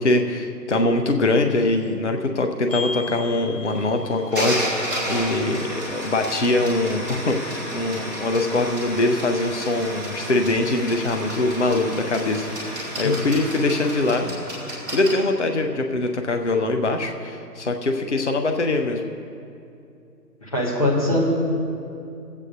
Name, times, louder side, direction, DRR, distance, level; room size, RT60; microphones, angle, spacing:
voice 1, 0.0-14.3 14.9-19.0, left 2 dB, 45° left, 5 dB, 0.6 m, -23 dB
sound 1, 2.7-15.1, equal, ahead, 1.6 m, -31 dB
voice 2, 20.4-21.3, left 1 dB, 20° left, -5 dB, 1.3 m, -22 dB
20.0 x 8.3 x 2.6 m, 2.6 s
figure-of-eight pair, 160°, 50 cm